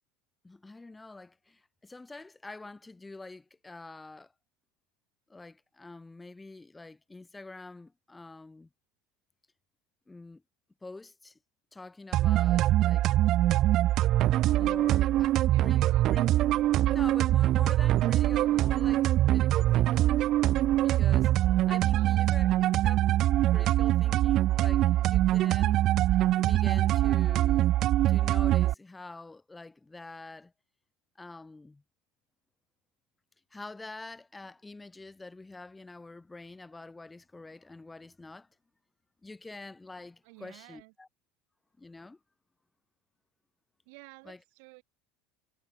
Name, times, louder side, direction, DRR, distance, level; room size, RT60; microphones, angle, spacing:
voice 1, 0.4-4.3 5.3-8.7 10.1-10.4 10.8-11.4 11.7-13.1 14.6-16.2 16.9-20.2 20.8-23.0 23.5-25.9 26.4-27.7 28.1-30.5 31.2-31.8 33.5-38.5 39.2-41.1 41.8-42.2 44.2-44.4, left 3 dB, 10° left, 2.5 m, -46 dB
sound 1, 12.1-28.7, right 14 dB, 50° right, 0.4 m, -24 dB
voice 2, 15.5-16.0 21.9-22.6 40.2-40.9 43.9-44.8, right 39 dB, 70° right, 3.4 m, -52 dB
supercardioid pair, 115°, 0 cm